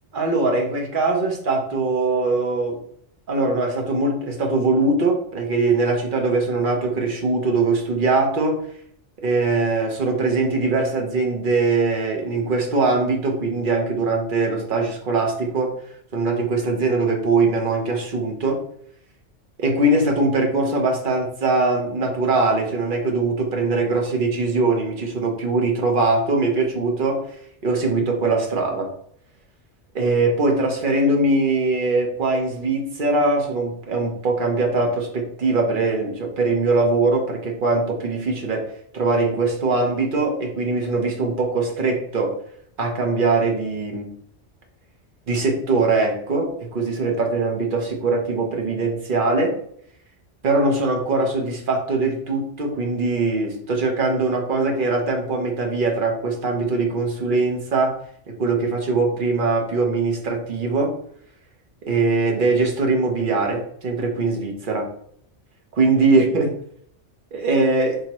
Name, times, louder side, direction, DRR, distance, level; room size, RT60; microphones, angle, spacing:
voice 1, 0.1-2.8 3.3-8.6 9.2-15.7 16.1-18.6 19.6-27.2 27.6-28.9 29.9-42.4 42.8-44.1 45.3-49.6 50.4-57.9 58.3-60.9 61.9-64.9 65.7-66.5 67.3-68.0, right 3 dB, 50° right, 1 dB, 1.0 m, -21 dB
4.7 x 2.8 x 3.0 m, 0.66 s
omnidirectional pair, 1.2 m